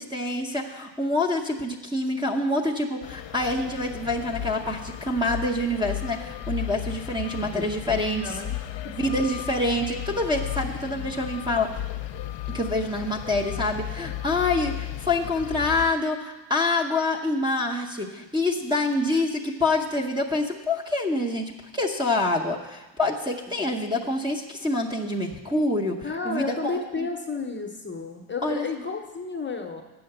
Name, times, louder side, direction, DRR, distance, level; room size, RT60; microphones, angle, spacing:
voice 1, 0.0-8.4 8.9-11.7 12.5-26.0 26.2-26.8 28.4-28.6, left 2 dB, 10° right, 2 dB, 0.8 m, -26 dB
sound 1, 3.0-15.9, left 12 dB, 70° left, 0.6 m, -35 dB
voice 2, 7.4-8.6 26.0-29.8, left 4 dB, 25° left, 3 dB, 0.7 m, -32 dB
7.7 x 5.8 x 7.7 m, 1.1 s
cardioid pair, 125°, 46 cm